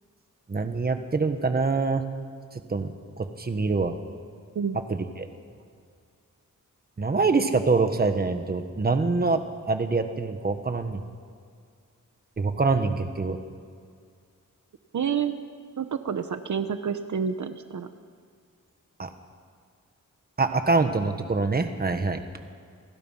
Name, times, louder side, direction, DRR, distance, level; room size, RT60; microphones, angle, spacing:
voice 1, 0.5-2.0 2.7-2.9 3.2-4.0 4.9-5.3 7.0-11.0 12.4-13.4 19.0-19.1 20.4-22.2, right 3 dB, 30° right, 7 dB, 1.5 m, -25 dB
voice 2, 14.9-15.3 15.8-17.9, right 7 dB, 65° right, 8 dB, 1.1 m, -28 dB
29.5 x 23.5 x 5.8 m, 2.1 s
wide cardioid pair, 170°, 32 cm